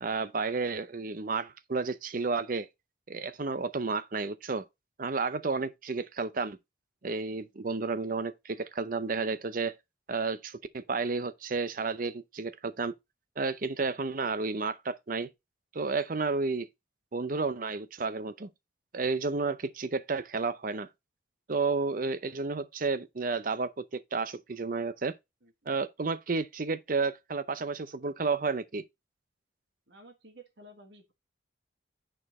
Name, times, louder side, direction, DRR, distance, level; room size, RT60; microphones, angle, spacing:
voice 1, 0.0-2.7 3.1-4.6 5.0-6.6 7.0-9.7 10.1-12.9 13.4-15.3 15.7-16.7 17.1-18.5 18.9-20.9 21.5-25.1 25.7-28.8, right 4 dB, 45° right, 0.6 m, -31 dB
voice 2, 29.9-31.1, right 1 dB, 60° right, 1.7 m, -53 dB
8.7 x 4.5 x 4.2 m
head